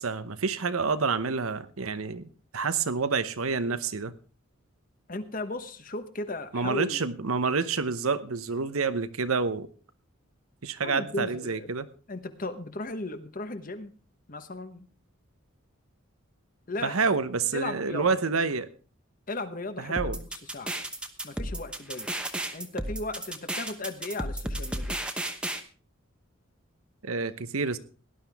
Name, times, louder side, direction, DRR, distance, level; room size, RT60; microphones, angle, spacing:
voice 1, 0.0-4.1 6.5-9.7 10.6-11.9 16.8-18.7 19.8-20.2 27.0-27.8, right 4 dB, 90° right, 13 dB, 0.9 m, -28 dB
voice 2, 5.1-7.1 10.8-11.7 12.1-13.9 14.3-14.8 16.7-17.0 17.5-18.1 19.3-20.3 20.5-20.7 21.2-22.1 22.5-25.0, left 2 dB, 40° left, 10 dB, 1.1 m, -36 dB
sound 1, 20.0-25.6, right 1 dB, 5° right, 0.9 m, -33 dB
18.0 x 11.0 x 3.5 m, 0.38 s
head